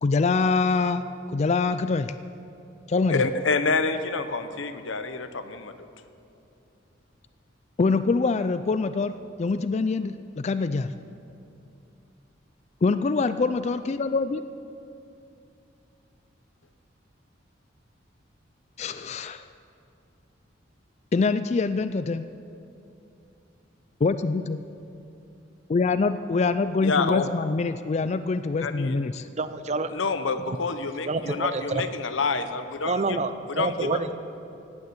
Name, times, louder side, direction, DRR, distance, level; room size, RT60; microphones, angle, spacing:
voice 1, 0.0-1.0 1.3-2.1 2.9-3.3 7.8-10.9 12.8-14.4 18.8-19.4 21.1-22.2 24.0-24.6 25.7-29.3, left 4 dB, 35° left, 11 dB, 0.4 m, -24 dB
voice 2, 3.1-5.7 26.8-27.2 28.6-29.0 29.9-33.2 33.6-34.0, left 4 dB, 90° left, 9 dB, 1.0 m, -27 dB
voice 3, 29.4-29.9 30.5-30.6 31.1-31.9 32.8-34.1, right 3 dB, 35° right, 11 dB, 0.6 m, -28 dB
16.5 x 9.6 x 8.2 m, 2.6 s
head